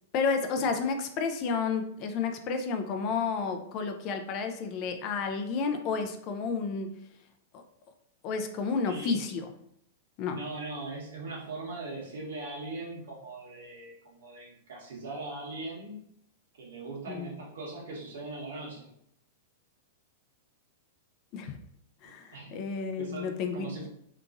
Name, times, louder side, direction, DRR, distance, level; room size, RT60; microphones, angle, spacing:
voice 1, 0.1-6.9 7.5-7.6 8.2-9.4 10.2-10.4 17.1-17.3 21.3-21.5 22.0-23.9, left 5 dB, 40° left, 7 dB, 0.3 m, -31 dB
voice 2, 8.9-9.2 10.3-16.0 16.6-18.9 22.3-23.9, right 2 dB, 80° right, -2 dB, 1.1 m, -40 dB
2.9 x 2.4 x 2.5 m, 0.71 s
hypercardioid pair, 140°, 0 cm